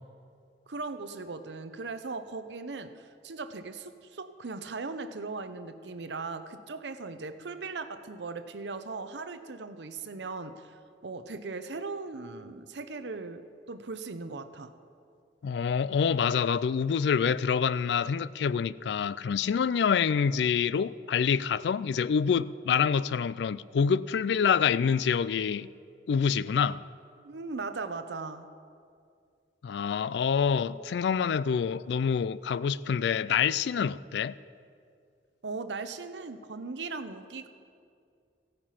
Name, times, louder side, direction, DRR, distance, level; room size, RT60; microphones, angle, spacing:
voice 1, 0.7-14.7 27.2-28.5 35.4-37.5, right 3 dB, 80° right, 0.7 m, -38 dB
voice 2, 15.4-25.7 26.1-26.8 29.6-34.3, left 6 dB, 70° left, 0.3 m, -26 dB
15.0 x 9.6 x 5.7 m
head